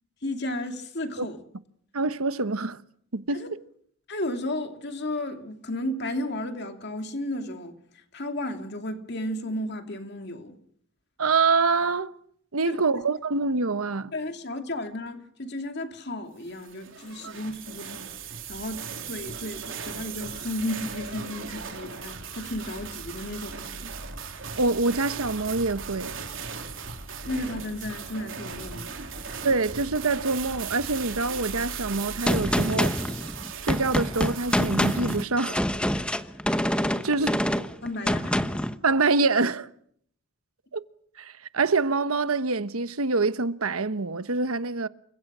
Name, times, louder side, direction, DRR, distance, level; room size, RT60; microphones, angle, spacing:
voice 1, 0.2-1.4 3.3-3.5 4.1-7.8 8.1-10.6 12.6-12.8 14.1-18.1 18.5-23.6 27.3-29.1 35.9-36.2 37.8-38.4, left 1 dB, 50° left, 2.7 m, -33 dB
voice 2, 1.9-2.8 3.1-3.5 11.2-12.1 12.5-14.1 17.2-17.3 24.6-26.2 29.4-32.9 33.6-35.6 37.0-37.4 38.8-39.7 40.7-40.8 41.2-44.9, right 3 dB, 90° right, 1.1 m, -25 dB
sound 1, 16.5-35.2, right 5 dB, 65° right, 3.8 m, -37 dB
Gunshot gunfire, 32.3-38.8, equal, 5° left, 1.0 m, -26 dB
29.0 x 25.5 x 6.2 m
head